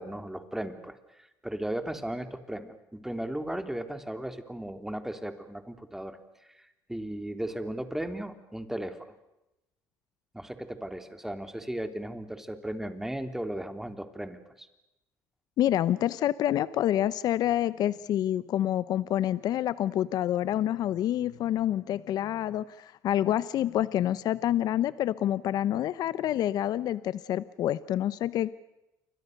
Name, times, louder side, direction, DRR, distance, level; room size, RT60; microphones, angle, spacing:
voice 1, 0.0-6.2 6.5-9.0 10.3-14.7, right 1 dB, 5° right, 8 dB, 3.3 m, -36 dB
voice 2, 15.6-28.5, left 12 dB, 65° left, 17 dB, 0.8 m, -27 dB
29.0 x 24.5 x 6.7 m, 0.92 s
supercardioid pair, 75°, 7 cm